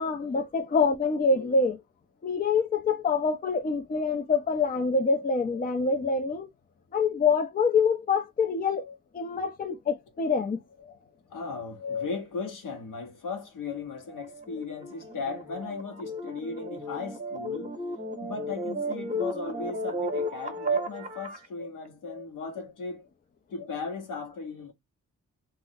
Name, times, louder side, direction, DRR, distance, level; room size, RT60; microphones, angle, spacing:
voice 1, 0.0-1.8 2.2-6.5 6.9-10.6 11.8-12.1, left 4 dB, 25° left, 0.5 m, -26 dB
voice 2, 11.3-17.7 18.2-23.0 23.5-24.7, left 4 dB, 75° left, 1.0 m, -37 dB
sound 1, 14.1-21.5, right 1 dB, 20° right, 0.9 m, -34 dB
2.4 x 2.0 x 3.9 m
cardioid pair, 85°, 33 cm